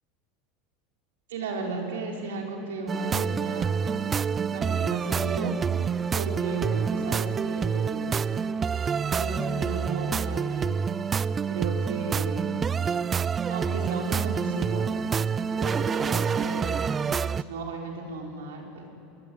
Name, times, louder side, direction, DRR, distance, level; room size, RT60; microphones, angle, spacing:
voice 1, 1.3-4.0 4.5-5.5 6.1-8.2 9.1-10.7 11.5-12.5 13.5-14.9 15.5-16.7 17.3-18.8, right 3 dB, 90° right, 1 dB, 5.0 m, -35 dB
sound 1, 2.9-17.4, right 6 dB, 25° right, 0.5 m, -27 dB
23.5 x 20.0 x 9.6 m, 2.9 s
supercardioid pair, 110°, 0 cm